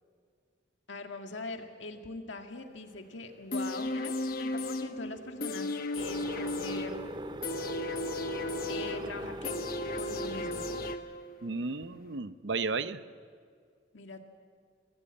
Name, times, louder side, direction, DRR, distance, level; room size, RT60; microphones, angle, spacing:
voice 1, 0.9-7.0 8.7-9.6 10.0-10.6 13.9-14.2, left 2 dB, 90° left, 4 dB, 1.9 m, -42 dB
sound 1, 3.5-11.5 11.8-11.9, left 2 dB, 50° left, 1.1 m, -35 dB
sound 2, 6.0-11.0, right 1 dB, 25° right, 0.5 m, -40 dB
voice 2, 11.4-13.0, right 4 dB, 75° right, 13 dB, 0.8 m, -33 dB
24.0 x 14.5 x 8.5 m, 2.1 s
head